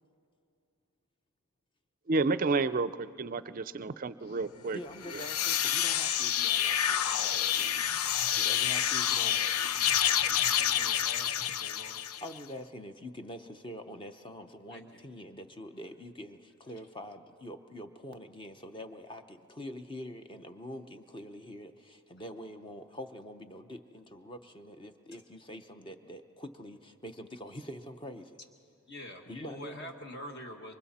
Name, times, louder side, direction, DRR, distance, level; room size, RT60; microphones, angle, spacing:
voice 1, 2.1-4.8, right 3 dB, 40° right, 15 dB, 0.4 m, -30 dB
voice 2, 4.7-7.9 8.4-9.8 12.2-28.4 29.3-29.9, left 1 dB, 20° left, 7 dB, 0.7 m, -45 dB
sound 1, 4.9-12.4, left 10 dB, 80° left, 0.5 m, -28 dB
voice 3, 10.5-12.0 14.7-15.0 28.9-30.7, left 1 dB, 50° left, 3 dB, 1.7 m, -46 dB
27.0 x 24.0 x 4.2 m, 2.5 s
head